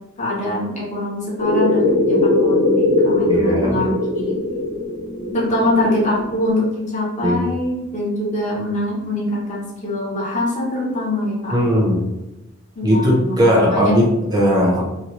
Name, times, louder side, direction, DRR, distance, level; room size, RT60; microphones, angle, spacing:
voice 1, 0.2-4.4 5.3-11.5 12.8-13.3 13.7-14.1, left 1 dB, 35° left, -4 dB, 0.9 m, -23 dB
sound 1, 1.4-6.5, left 2 dB, 65° left, 1.3 m, -20 dB
voice 2, 3.3-3.8 7.2-7.4 11.5-12.0 12.8-14.8, equal, 20° right, -4 dB, 0.7 m, -17 dB
3.0 x 2.2 x 3.1 m, 0.99 s
head